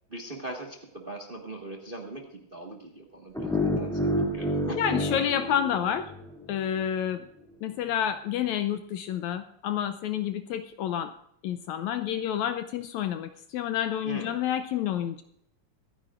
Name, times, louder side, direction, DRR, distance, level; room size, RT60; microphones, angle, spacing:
voice 1, 0.1-4.8 14.0-14.4, right 2 dB, 25° right, 1 dB, 1.2 m, -40 dB
sound 1, 3.3-6.4, equal, ahead, 1.8 m, -29 dB
voice 2, 4.8-6.1 6.5-7.3 7.6-11.1 11.4-15.2, left 9 dB, 75° left, 9 dB, 1.8 m, -29 dB
24.5 x 10.0 x 2.5 m, 0.73 s
omnidirectional pair, 3.6 m